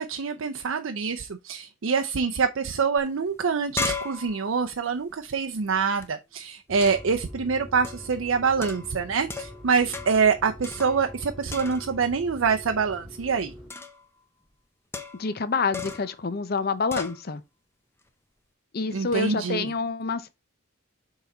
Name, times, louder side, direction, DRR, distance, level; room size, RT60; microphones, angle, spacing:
voice 1, 0.0-13.5 18.9-19.7, right 5 dB, 75° right, 0.5 m, -25 dB
sound 1, 3.0-3.1 3.4-6.1 6.8-7.2 7.8-8.1 8.6-9.7 9.9-10.3 10.6-11.2 11.5-12.1 13.7-14.1 14.9-15.4 15.7-16.2 16.9-17.2, left 3 dB, 10° left, 0.7 m, -35 dB
sound 2, 6.7-13.7, equal, 5° right, 2.0 m, -44 dB
voice 2, 15.2-17.4 18.7-20.3, left 4 dB, 50° left, 0.6 m, -27 dB
6.5 x 3.9 x 4.0 m
head